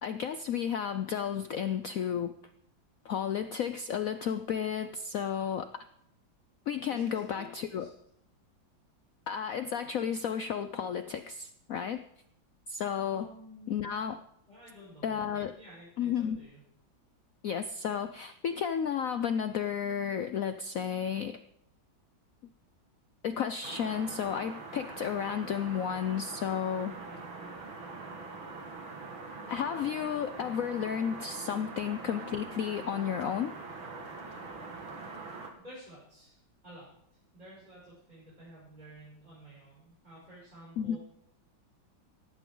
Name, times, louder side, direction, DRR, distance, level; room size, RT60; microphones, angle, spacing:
voice 1, 0.0-2.3 3.0-5.7 6.7-7.9 9.3-12.0 12.7-13.3 13.7-14.2 15.0-15.5 16.0-16.4 17.4-21.4 23.2-26.9 29.5-33.5 40.8-41.0, left 8 dB, 70° left, 10 dB, 0.8 m, -32 dB
voice 2, 6.9-7.9 13.1-14.0 14.5-16.6 26.9-27.2 35.6-36.4 36.6-36.9 37.3-41.0, equal, 20° right, -8 dB, 6.4 m, -51 dB
sound 1, 23.6-35.5, right 3 dB, 80° right, 2.8 m, -43 dB
18.5 x 14.5 x 3.9 m, 0.74 s
omnidirectional pair, 2.2 m